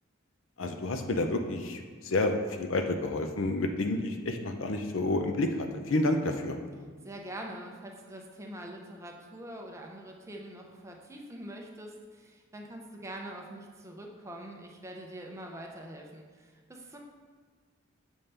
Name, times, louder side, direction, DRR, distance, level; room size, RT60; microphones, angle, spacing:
voice 1, 0.6-6.6, left 2 dB, 65° left, 5 dB, 0.5 m, -30 dB
voice 2, 7.0-17.0, right 1 dB, 15° right, 1 dB, 0.6 m, -44 dB
7.1 x 5.3 x 3.3 m, 1.5 s
head